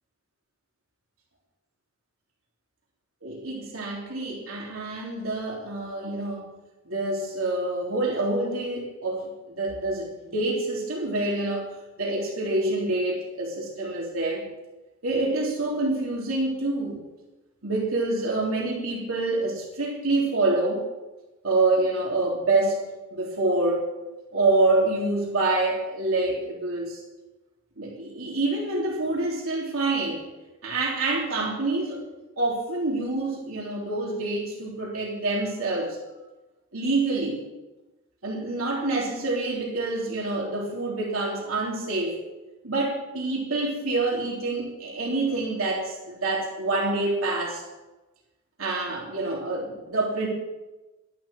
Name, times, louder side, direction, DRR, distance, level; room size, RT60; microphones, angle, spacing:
voice 1, 3.2-6.5 6.8-11.7 12.0-14.4 15.0-17.0 17.6-20.8 21.4-22.8 23.1-23.9 24.3-27.0 27.8-30.2 30.6-32.0 32.4-36.0 36.7-37.4 38.2-42.2 42.6-47.6 48.6-50.3, right 2 dB, 80° right, -3 dB, 3.4 m, -26 dB
12.5 x 11.5 x 7.2 m, 1.1 s
head